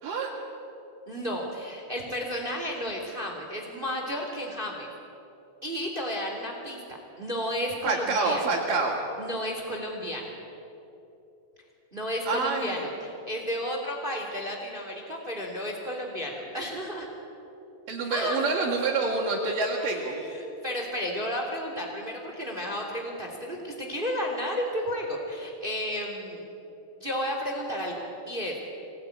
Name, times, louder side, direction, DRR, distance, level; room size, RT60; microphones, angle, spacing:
voice 1, 1.1-4.9 5.6-6.8 7.2-8.4 9.2-10.3 11.9-17.1 18.1-18.4 19.8-26.4 27.0-28.6, equal, 15° right, 1 dB, 3.0 m, -32 dB
voice 2, 7.8-9.0 12.3-12.9 17.9-20.2, right 3 dB, 60° right, -4 dB, 3.9 m, -27 dB
25.0 x 19.0 x 9.8 m, 2.9 s
omnidirectional pair, 4.3 m